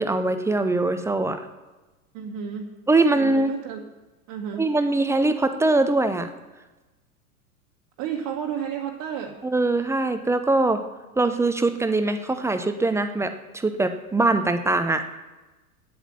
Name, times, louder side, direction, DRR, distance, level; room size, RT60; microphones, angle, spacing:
voice 1, 0.0-1.5 2.9-3.5 4.6-6.3 9.4-10.8 11.2-15.1, right 2 dB, 5° right, 9 dB, 0.6 m, -22 dB
voice 2, 2.1-2.7 3.1-3.8 4.3-4.7 8.0-9.4, right 8 dB, 40° right, 0 dB, 1.5 m, -31 dB
9.5 x 8.1 x 8.7 m, 1.2 s
figure-of-eight pair, 85°, 44 cm